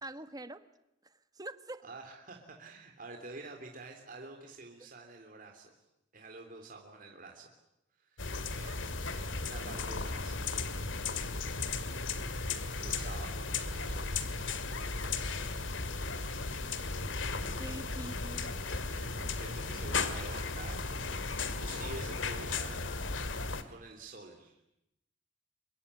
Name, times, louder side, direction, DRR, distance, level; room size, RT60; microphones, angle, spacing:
voice 1, 0.0-0.6 1.0-1.8 17.6-18.5, right 1 dB, 20° right, 11 dB, 1.3 m, -44 dB
voice 2, 1.8-5.7 6.1-7.5 8.0-10.5 12.8-14.0 19.0-23.1 23.7-24.6, right 3 dB, 45° right, 2 dB, 3.4 m, -49 dB
sound 1, 8.2-23.6, left 4 dB, 85° left, 2.2 m, -36 dB
sound 2, 11.4-19.8, right 1 dB, 70° right, 4.2 m, -51 dB
25.5 x 22.5 x 9.8 m, 0.82 s
head